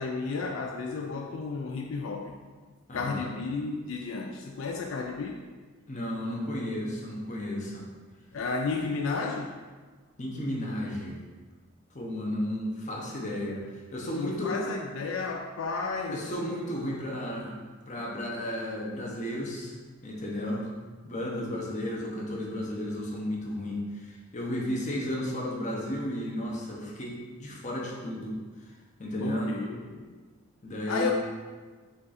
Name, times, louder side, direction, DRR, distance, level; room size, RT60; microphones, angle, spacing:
voice 1, 0.0-2.4 2.9-5.4 8.3-9.6 14.1-16.2 29.2-30.2 30.9-31.1, left 4 dB, 75° left, 2 dB, 0.3 m, -32 dB
voice 2, 2.9-3.3 5.9-7.9 10.2-11.2 11.9-14.6 16.1-17.6 17.9-19.8 20.0-20.7 21.0-28.4 29.0-29.5 30.6-31.1, left 1 dB, 35° left, -2 dB, 0.7 m, -33 dB
5.1 x 2.5 x 4.0 m, 1.4 s
head